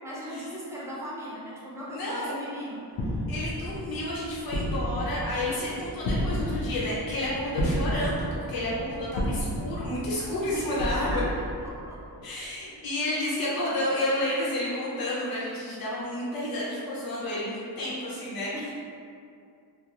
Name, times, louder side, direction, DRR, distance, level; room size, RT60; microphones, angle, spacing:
voice 1, 0.0-3.2 10.5-12.0 18.5-18.7, equal, 5° right, -7 dB, 0.8 m, -38 dB
voice 2, 1.9-2.4 3.3-11.2 12.2-18.5, left 1 dB, 60° left, -7 dB, 0.8 m, -31 dB
sound 1, 2.9-12.2, equal, 85° left, 0.5 m, -32 dB
2.5 x 2.2 x 2.9 m, 2.4 s
cardioid pair, 70°, 40 cm